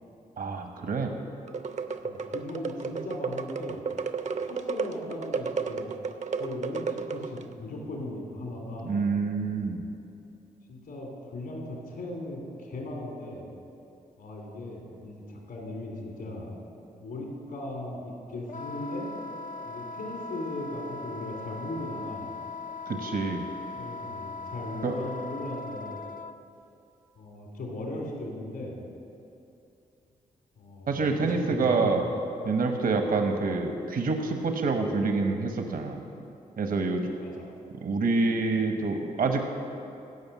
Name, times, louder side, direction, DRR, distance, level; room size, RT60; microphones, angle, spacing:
voice 1, 0.4-1.2 8.8-9.9 22.9-23.4 24.8-24.9 30.9-32.0 32.4-36.0 36.6-37.1 37.8-39.5, right 4 dB, 60° right, 5 dB, 1.1 m, -27 dB
sound 1, 1.5-7.5, right 5 dB, 45° right, 0.7 m, -33 dB
voice 2, 2.0-3.8 4.4-8.9 10.7-13.5 14.2-16.5 16.9-19.1 19.6-22.3 23.8-26.0 27.2-28.9 30.6-32.0 33.3-33.4 37.2-37.5, left 1 dB, 75° left, -1 dB, 2.9 m, -38 dB
Wind instrument woodwind instrument, 18.5-26.3, left 3 dB, 60° left, 0.6 m, -39 dB
14.5 x 5.3 x 8.2 m, 2.7 s
supercardioid pair, 55°, 16 cm